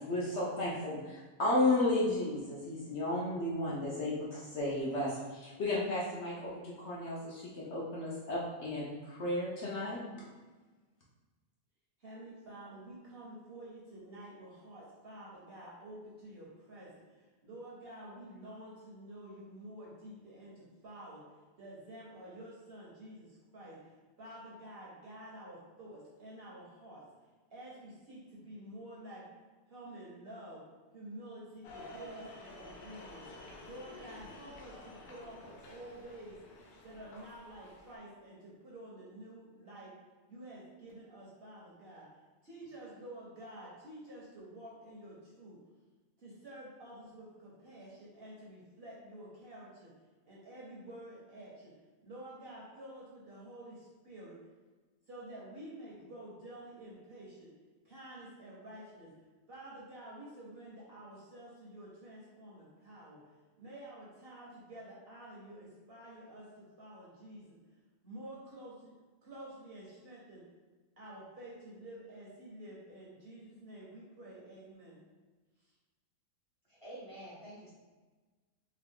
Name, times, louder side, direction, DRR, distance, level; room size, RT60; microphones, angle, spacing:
voice 1, 0.0-10.3, left 2 dB, 60° left, -6 dB, 0.8 m, -33 dB
voice 2, 12.0-21.2 21.6-27.0 27.5-29.3 29.7-30.6 30.9-36.4 36.8-39.9 40.3-42.1 42.4-45.6 46.2-49.9 50.2-51.7 52.0-54.4 55.1-57.5 57.8-59.1 59.5-63.2 63.6-67.6 68.0-68.9 69.2-70.5 71.0-75.0, right 1 dB, 50° right, -6 dB, 0.8 m, -50 dB
sound 1, 31.6-38.0, left 1 dB, 90° left, 1.1 m, -51 dB
voice 3, 76.7-77.7, right 1 dB, 30° left, -9 dB, 0.7 m, -48 dB
2.9 x 2.3 x 3.4 m, 1.3 s
omnidirectional pair, 1.6 m